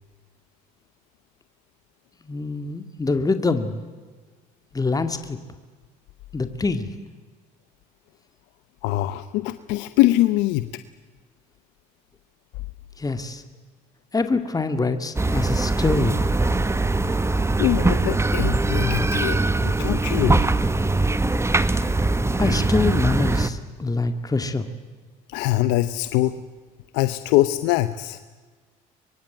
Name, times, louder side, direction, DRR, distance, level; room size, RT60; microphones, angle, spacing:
voice 1, 2.3-3.8 4.7-5.4 6.3-6.9 13.0-13.4 14.1-16.2 22.4-24.7, left 3 dB, 20° left, 9 dB, 2.3 m, -24 dB
voice 2, 8.8-10.8 17.0-17.2 17.6-20.4 25.3-26.4 26.9-28.2, left 16 dB, 80° left, 12 dB, 0.9 m, -23 dB
sound 1, 15.2-23.5, right 2 dB, 15° right, 1.5 m, -22 dB
23.5 x 23.5 x 9.2 m, 1.4 s
supercardioid pair, 80°, 18 cm